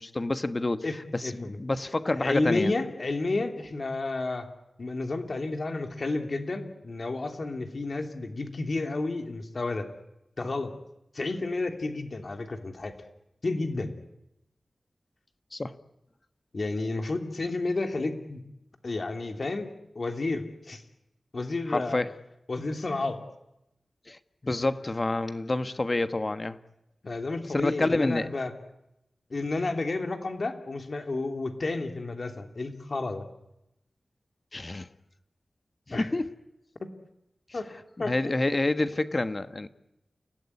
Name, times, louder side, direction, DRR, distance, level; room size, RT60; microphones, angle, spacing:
voice 1, 0.0-2.7 15.5-15.8 21.7-22.1 24.1-26.6 27.5-28.3 34.5-34.9 35.9-36.3 38.0-39.7, left 2 dB, 35° left, 10 dB, 1.3 m, -28 dB
voice 2, 0.8-1.6 2.1-4.5 4.8-9.9 10.4-10.7 11.1-12.9 13.4-13.9 16.5-18.4 18.8-20.8 21.3-22.0 22.5-23.2 27.0-28.5 29.3-33.3 35.9-36.1 36.8-36.9 37.5-37.7 38.0-38.4, left 3 dB, 55° left, 5 dB, 3.1 m, -31 dB
29.5 x 17.5 x 9.9 m, 0.88 s
wide cardioid pair, 75°, 0 cm